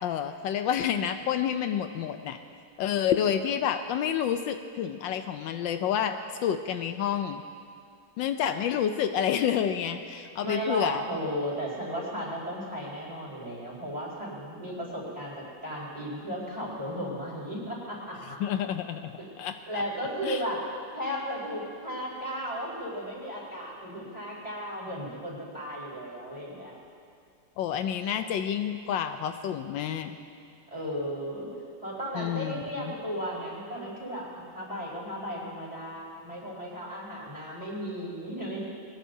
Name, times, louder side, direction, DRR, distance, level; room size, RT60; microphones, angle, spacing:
voice 1, 0.0-2.4 2.8-6.2 6.4-7.4 8.2-11.0 18.4-19.1 19.4-19.8 20.2-20.4 27.6-30.1 32.1-32.9, left 9 dB, 80° left, 8 dB, 1.3 m, -29 dB
voice 2, 10.4-18.4 19.7-26.8 30.7-31.5 31.8-38.7, equal, 20° right, -6 dB, 4.7 m, -35 dB
22.0 x 20.0 x 2.7 m, 2.3 s
omnidirectional pair, 2.0 m